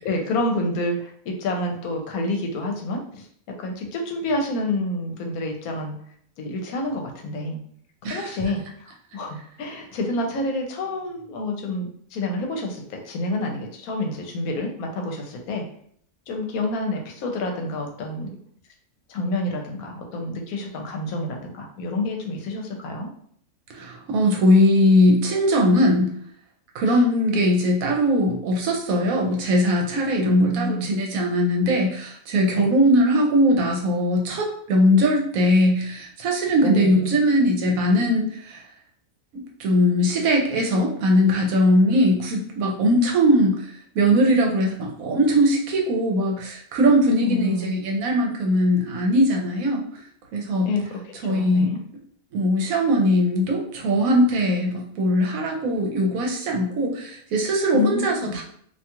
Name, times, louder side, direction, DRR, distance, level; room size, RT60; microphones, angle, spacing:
voice 1, 0.0-3.2 3.6-5.9 6.4-7.6 8.1-15.6 16.3-18.3 19.1-23.1 26.9-27.0 30.2-30.9 32.5-32.7 36.6-37.1 47.2-47.8 50.7-51.8 57.7-58.4, left 1 dB, 80° left, 2 dB, 1.1 m, -28 dB
voice 2, 23.7-26.1 26.7-38.6 39.3-43.6 43.9-49.8 50.3-50.7 51.2-51.7 52.3-58.4, equal, 75° right, 1 dB, 1.0 m, -20 dB
2.6 x 2.3 x 2.8 m, 0.62 s
omnidirectional pair, 1.5 m